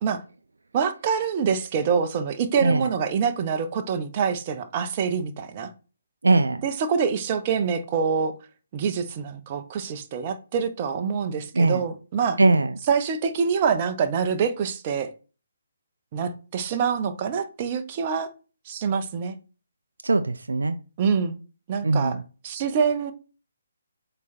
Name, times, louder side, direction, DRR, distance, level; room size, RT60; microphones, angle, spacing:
voice 1, 0.7-5.7 6.6-8.3 8.7-12.4 12.9-15.1 16.1-18.3 18.7-19.4 21.0-21.4 21.7-22.2 22.4-23.1, right 6 dB, 30° right, 0.9 m, -25 dB
voice 2, 6.2-6.6 11.5-11.8 12.4-12.7 20.0-20.8 21.8-22.2, right 2 dB, 70° right, 0.6 m, -20 dB
8.3 x 3.3 x 4.3 m
figure-of-eight pair, 140°, 0 cm